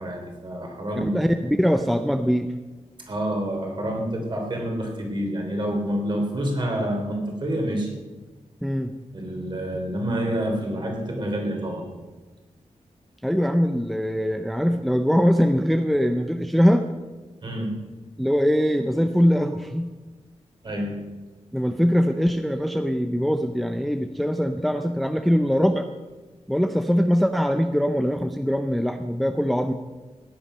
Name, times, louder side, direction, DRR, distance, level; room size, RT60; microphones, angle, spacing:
voice 1, 0.0-1.2 3.1-7.9 9.1-11.9 17.4-17.8 20.6-21.1, right 1 dB, 40° right, 1 dB, 3.0 m, -28 dB
voice 2, 0.9-2.5 8.6-8.9 13.2-16.9 18.2-19.9 21.5-25.9 26.5-29.7, equal, ahead, 7 dB, 0.5 m, -22 dB
16.5 x 10.5 x 5.5 m, 1.3 s
wide cardioid pair, 175°, 12 cm